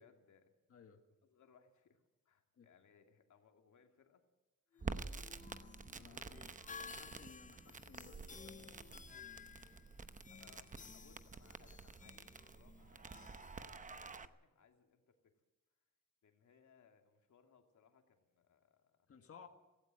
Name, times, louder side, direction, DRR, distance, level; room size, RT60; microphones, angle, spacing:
voice 1, 0.0-0.5 1.2-4.2 4.7-6.4 6.7-7.6 10.3-15.3 16.2-19.1, left 6 dB, 75° left, 4 dB, 2.7 m, -69 dB
voice 2, 0.7-1.0 2.6-2.7 6.0-6.5 6.8-8.8 19.1-19.5, left 6 dB, 50° left, 5 dB, 1.7 m, -59 dB
sound 1, 4.7-14.3, left 5 dB, 25° left, 0.7 m, -56 dB
Crackle, 4.8-14.3, right 4 dB, 25° right, 0.8 m, -49 dB
17.0 x 16.5 x 9.4 m, 1.1 s
wide cardioid pair, 165°, 30 cm